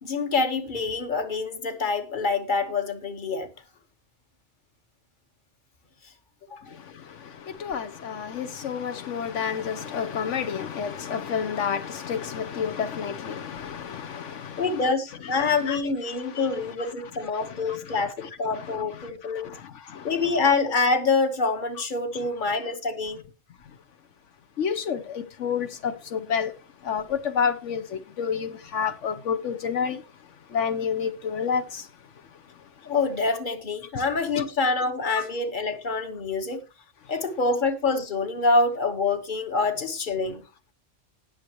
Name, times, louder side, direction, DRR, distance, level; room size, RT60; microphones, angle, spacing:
voice 1, 0.0-3.5 6.5-6.6 14.6-19.5 20.0-23.2 32.8-36.6 37.1-40.4, left 3 dB, 45° left, 1.5 m, -26 dB
voice 2, 7.6-14.3 15.6-16.5 24.6-26.5 26.9-27.8 28.2-30.0 30.5-31.6 34.4-34.5, left 7 dB, 80° left, 1.1 m, -29 dB
19.0 x 6.6 x 3.0 m
omnidirectional pair, 1.2 m